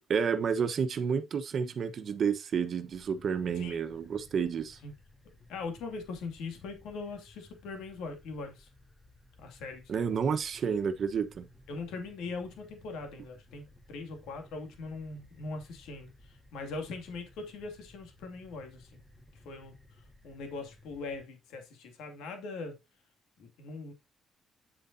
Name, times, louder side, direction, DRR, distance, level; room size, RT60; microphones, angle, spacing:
voice 1, 0.1-4.8 9.9-11.5, right 6 dB, 55° right, 1.2 m, -30 dB
sound 1, 2.9-21.2, left 1 dB, 15° left, 3.2 m, -58 dB
voice 2, 5.5-8.7 9.4-10.0 11.7-18.9 19.3-19.7 20.2-22.8 23.4-23.9, left 3 dB, 90° left, 2.5 m, -41 dB
9.0 x 7.7 x 2.8 m
cardioid pair, 90°, 0 cm